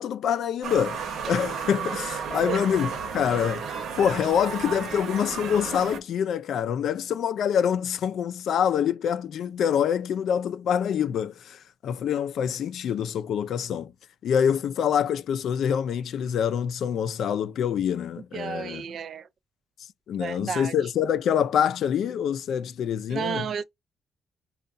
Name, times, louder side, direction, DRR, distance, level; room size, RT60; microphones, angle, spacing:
voice 1, 0.0-3.7 4.0-13.9 14.2-18.9 20.1-23.5, left 8 dB, 75° left, 0.4 m, -26 dB
sound 1, 0.6-6.0, right 6 dB, 85° right, 0.9 m, -33 dB
voice 2, 18.3-19.3 20.2-20.7 23.1-23.6, right 7 dB, 60° right, 0.3 m, -32 dB
5.4 x 2.3 x 2.5 m
cardioid pair, 95°, 0 cm